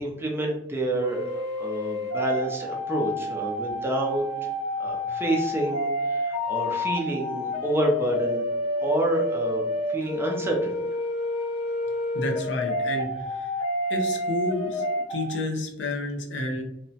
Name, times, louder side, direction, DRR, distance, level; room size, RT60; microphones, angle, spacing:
voice 1, 0.0-4.3 4.8-8.4 8.8-9.6 9.9-10.8, right 1 dB, 15° right, 0 dB, 0.5 m, -28 dB
sound 1, 1.0-15.4, left 1 dB, 35° left, 0.6 m, -29 dB
voice 2, 12.1-13.5 13.9-16.6, left 2 dB, 90° left, 2 dB, 0.6 m, -30 dB
2.8 x 2.1 x 2.7 m, 0.81 s
head